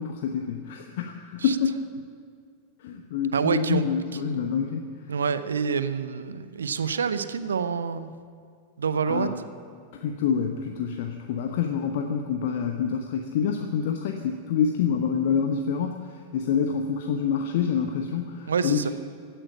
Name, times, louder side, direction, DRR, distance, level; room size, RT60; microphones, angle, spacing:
voice 1, 0.0-1.8 2.8-4.9 9.1-9.4 9.9-18.9, left 7 dB, 55° left, 4 dB, 1.0 m, -27 dB
voice 2, 3.3-3.8 5.1-8.1 8.8-9.3 18.5-18.9, right 6 dB, 70° right, 13 dB, 0.7 m, -27 dB
15.5 x 9.0 x 8.8 m, 2.2 s
figure-of-eight pair, 90°, 0 cm